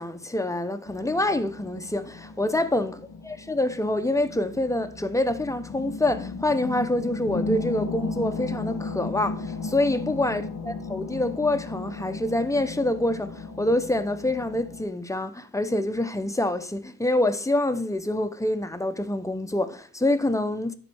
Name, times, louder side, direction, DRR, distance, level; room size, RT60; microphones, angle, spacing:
voice 1, 0.0-20.7, left 1 dB, 10° left, 0.7 m, -26 dB
sound 1, 0.9-14.8, left 3 dB, 65° left, 1.7 m, -35 dB
9.9 x 4.1 x 6.9 m
wide cardioid pair, 95°, 35 cm